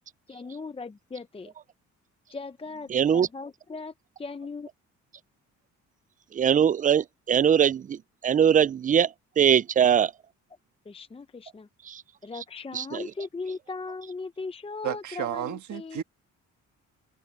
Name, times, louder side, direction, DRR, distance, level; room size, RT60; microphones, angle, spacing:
voice 1, 0.3-1.5 2.3-4.7 10.9-11.7 12.2-16.0, left 4 dB, 20° left, 0.7 m, -38 dB
voice 2, 2.9-3.3 6.3-9.1 9.4-10.1 11.9-12.0 12.7-13.0, right 8 dB, 25° right, 0.4 m, -22 dB
voice 3, 14.8-16.0, right 11 dB, 70° right, 1.6 m, -32 dB
cardioid pair, 90°, 30 cm